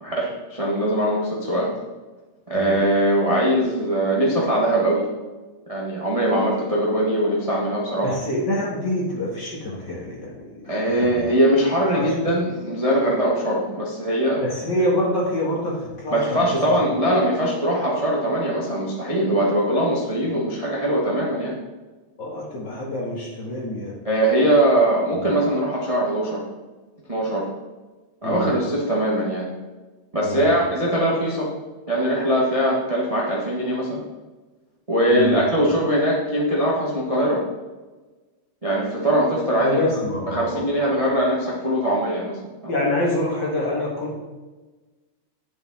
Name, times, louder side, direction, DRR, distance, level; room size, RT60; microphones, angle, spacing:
voice 1, 0.0-1.7 2.5-5.1 5.7-8.2 10.6-14.4 16.1-21.6 24.0-26.4 27.1-27.5 28.2-29.5 30.1-31.5 31.9-34.0 34.9-37.4 38.6-39.8 40.3-42.7, right 1 dB, 20° right, -4 dB, 1.1 m, -21 dB
voice 2, 8.0-11.3 11.9-12.1 14.4-16.4 16.6-16.8 19.8-19.9 20.2-20.5 22.2-24.0 28.2-28.5 30.2-30.6 35.1-35.4 39.6-41.2 42.7-44.2, left 1 dB, 40° left, -3 dB, 2.1 m, -26 dB
9.9 x 7.6 x 4.2 m, 1.2 s
omnidirectional pair, 3.4 m